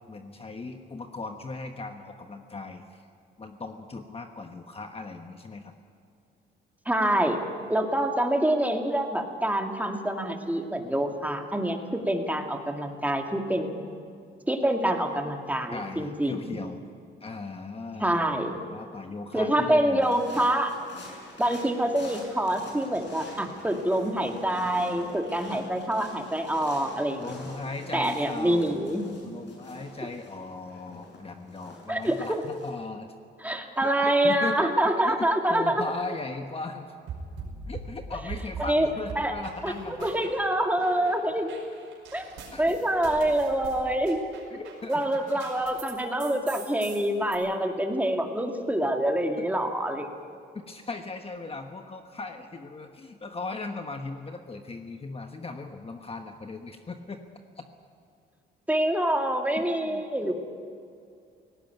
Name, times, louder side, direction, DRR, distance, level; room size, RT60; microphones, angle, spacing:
voice 1, 0.1-3.1 3.4-5.7 15.7-16.8 17.2-20.2 27.2-33.1 33.8-34.6 35.0-36.9 37.7-40.3 42.5-42.8 44.5-45.4 49.4-49.5 50.7-57.2 57.6-57.7 59.5-60.3, left 3 dB, 30° left, 5 dB, 1.3 m, -38 dB
voice 2, 6.9-7.4 7.7-13.8 14.5-16.6 18.0-18.5 19.3-20.7 21.4-27.3 27.9-29.0 31.9-32.4 33.4-35.8 38.6-38.9 39.2-39.3 39.6-41.5 42.1-42.3 42.6-44.2 44.9-50.1 58.7-60.3, right 1 dB, 10° right, 3 dB, 2.3 m, -26 dB
footsteps boots crunchy snow nice, 20.0-32.7, left 2 dB, 65° left, 6.9 m, -46 dB
sound 1, 37.1-38.7 39.1-40.5 40.8-45.9 46.2-47.4, right 5 dB, 85° right, 5.3 m, -41 dB
18.0 x 18.0 x 9.3 m, 2.4 s
cardioid pair, 90°, 20 cm